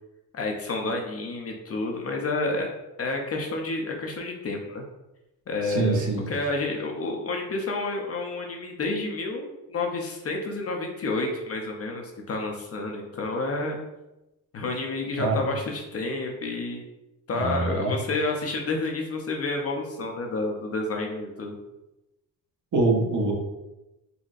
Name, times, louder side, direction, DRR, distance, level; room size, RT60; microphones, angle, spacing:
voice 1, 0.3-2.7 3.0-4.8 5.5-6.0 6.3-13.8 14.5-16.8 17.3-21.6, left 2 dB, 35° left, 2 dB, 0.5 m, -30 dB
voice 2, 5.6-6.3 15.2-15.4 17.3-17.9 22.7-23.3, right 3 dB, 50° right, -1 dB, 0.9 m, -24 dB
3.9 x 2.1 x 2.5 m, 0.97 s
cardioid pair, 80°, 40 cm